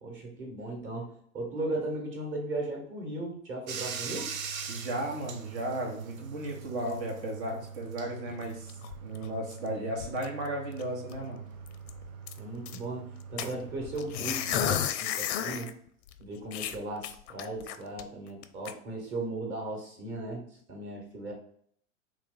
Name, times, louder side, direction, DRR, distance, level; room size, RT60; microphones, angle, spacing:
voice 1, 0.0-4.3 12.4-15.7 16.2-20.4 20.7-21.3, right 2 dB, 30° right, -1 dB, 1.4 m, -37 dB
Bathtub (filling or washing), 3.7-14.8, right 6 dB, 75° right, 0.7 m, -43 dB
voice 2, 4.7-8.7 9.0-11.4, right 1 dB, 55° right, 1 dB, 1.3 m, -35 dB
sound 1, 8.3-9.7 10.0-10.5 10.8-10.9 11.1-11.3 11.6-12.8 13.4-15.7 16.1-16.2 16.5-18.0 18.4-18.7, left 10 dB, 50° left, 0.5 m, -33 dB
3.3 x 2.5 x 3.8 m, 0.63 s
hypercardioid pair, 105°, 41 cm